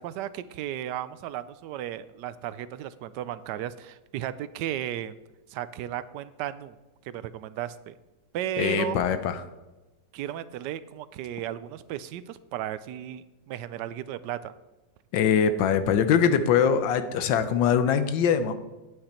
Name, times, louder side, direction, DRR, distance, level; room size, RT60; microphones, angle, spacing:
voice 1, 0.0-5.1 5.5-6.8 7.0-7.9 8.3-9.0 10.1-14.5, right 11 dB, 75° right, 15 dB, 1.1 m, -35 dB
voice 2, 8.6-9.4 15.1-18.5, left 7 dB, 80° left, 11 dB, 1.5 m, -22 dB
9.4 x 8.8 x 4.3 m, 1.1 s
omnidirectional pair, 2.0 m